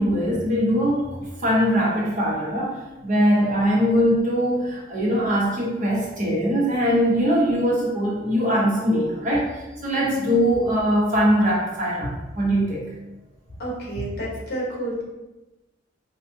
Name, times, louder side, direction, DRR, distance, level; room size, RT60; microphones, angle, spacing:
voice 1, 0.0-9.5 9.8-12.8, equal, 45° right, -4 dB, 0.9 m, -21 dB
voice 2, 13.6-15.0, right 1 dB, 60° left, -4 dB, 1.2 m, -30 dB
4.3 x 2.5 x 2.8 m, 1.1 s
head